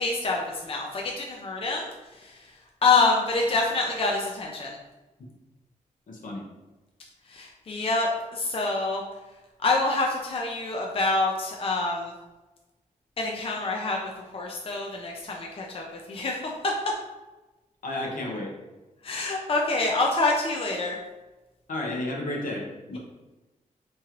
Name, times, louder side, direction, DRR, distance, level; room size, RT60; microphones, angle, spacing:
voice 1, 0.0-2.5 2.8-4.8 7.3-9.0 9.6-12.1 13.2-16.7 19.0-21.0, left 3 dB, 45° left, -1 dB, 0.5 m, -26 dB
voice 2, 6.1-6.4 17.8-18.5 21.7-23.0, left 1 dB, 80° left, -1 dB, 0.9 m, -32 dB
3.6 x 3.0 x 3.0 m, 1.1 s
wide cardioid pair, 110°, 14 cm